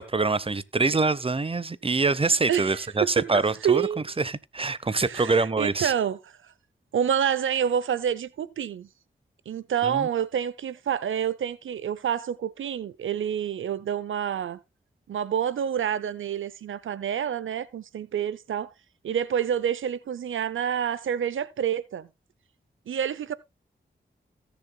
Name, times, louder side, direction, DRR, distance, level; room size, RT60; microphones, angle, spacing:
voice 1, 0.0-3.9 4.2-5.9 9.8-10.1, right 3 dB, 30° right, 0.8 m, -25 dB
voice 2, 2.5-3.3 3.6-4.0 4.9-6.5 6.9-8.9 9.5-14.6 15.1-18.7 19.0-22.1 22.9-23.4, right 8 dB, 85° right, 0.6 m, -28 dB
18.0 x 6.9 x 2.2 m
cardioid pair, 45°, 20 cm